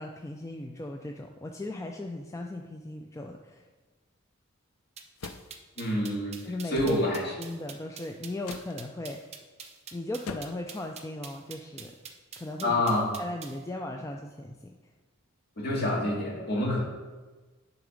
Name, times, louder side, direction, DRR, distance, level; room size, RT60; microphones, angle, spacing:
voice 1, 0.0-3.7 6.5-6.8 7.4-9.3 9.9-12.0 12.4-12.8 13.2-14.8, left 1 dB, 15° left, 2 dB, 0.4 m, -37 dB
sound 1, 5.0-13.6, right 7 dB, 30° right, 0.7 m, -45 dB
sound 2, 5.2-5.5 6.7-7.0 8.4-8.7 10.3-10.7, left 5 dB, 80° left, 0.5 m, -41 dB
voice 2, 5.8-6.4 6.7-7.3 12.6-13.1 15.6-16.8, left 1 dB, 50° left, -3 dB, 2.0 m, -27 dB
10.0 x 4.1 x 5.1 m, 1.3 s
head